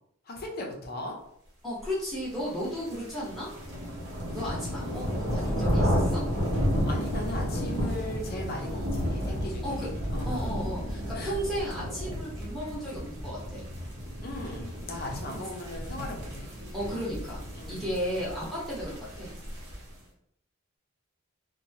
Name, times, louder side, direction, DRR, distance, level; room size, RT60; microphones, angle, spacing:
voice 1, 0.3-1.2 6.8-10.5 11.1-11.4 14.2-16.5 17.5-17.9, left 1 dB, 45° left, 1 dB, 0.6 m, -38 dB
voice 2, 1.6-3.5 4.3-6.2 8.7-8.9 9.6-9.9 10.3-13.6 16.7-19.3, equal, ahead, -9 dB, 0.9 m, -34 dB
sound 1, 2.4-19.9, equal, 50° right, 0.9 m, -32 dB
2.7 x 2.2 x 2.7 m, 0.72 s
head